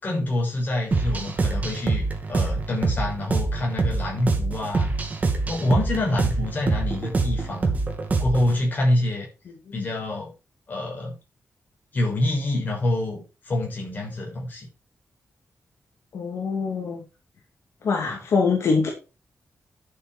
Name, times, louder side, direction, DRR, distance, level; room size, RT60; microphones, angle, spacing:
voice 1, 0.0-4.9 5.5-7.8 8.2-9.3 9.7-10.3 10.7-11.2 11.9-14.7 18.1-18.2, left 1 dB, 35° left, -1 dB, 6.2 m, -26 dB
sound 1, 0.9-8.6, right 3 dB, 30° right, 2.7 m, -25 dB
voice 2, 16.1-17.0 17.8-18.9, left 4 dB, 70° left, 1 dB, 2.7 m, -24 dB
11.0 x 8.0 x 4.5 m, 0.30 s
wide cardioid pair, 175°, 5 cm